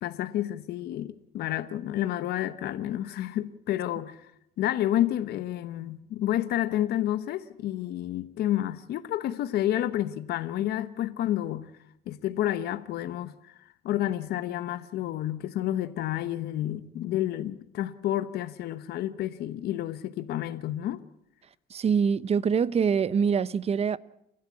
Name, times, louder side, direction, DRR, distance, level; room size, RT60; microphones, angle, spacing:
voice 1, 0.0-4.3 4.6-11.7 12.1-13.6 13.8-21.0, left 13 dB, 70° left, 1.0 m, -30 dB
voice 2, 21.7-24.0, right 6 dB, 40° right, 0.8 m, -24 dB
30.0 x 12.5 x 8.5 m
cardioid pair, 110°, 17 cm